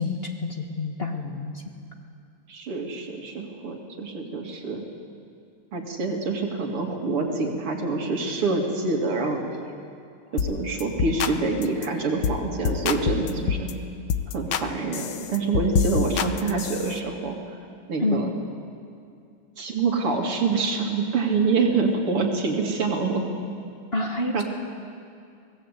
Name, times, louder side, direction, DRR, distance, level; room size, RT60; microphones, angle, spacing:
voice 1, 0.0-1.6 18.0-18.2 23.9-24.4, left 2 dB, 30° left, 2 dB, 1.8 m, -28 dB
voice 2, 2.5-4.8 5.7-9.7 10.3-13.7 14.3-17.4 17.9-18.3 19.6-23.2 24.3-24.4, right 4 dB, 90° right, 1 dB, 3.5 m, -26 dB
sound 1, 10.4-10.5 10.8-11.3 11.6-11.9 12.2-12.4 12.6-13.7 14.1-14.7 14.9-17.0, left 7 dB, 65° left, 1.6 m, -26 dB
24.0 x 19.0 x 8.4 m, 2.4 s
omnidirectional pair, 2.4 m